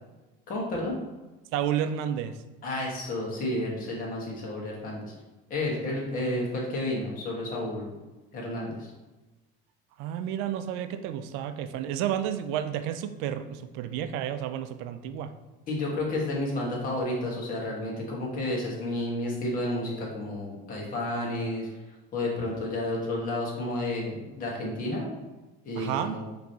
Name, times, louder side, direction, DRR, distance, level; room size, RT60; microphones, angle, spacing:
voice 1, 0.5-0.9 2.6-5.1 5.5-7.9 8.3-8.9 15.7-21.7 22.1-25.1 25.6-26.2, left 1 dB, 40° left, -2 dB, 1.4 m, -31 dB
voice 2, 1.5-2.4 10.0-15.3 25.8-26.2, right 10 dB, 80° right, 10 dB, 0.4 m, -31 dB
5.9 x 3.0 x 2.9 m, 1.1 s
cardioid pair, 145°, 21 cm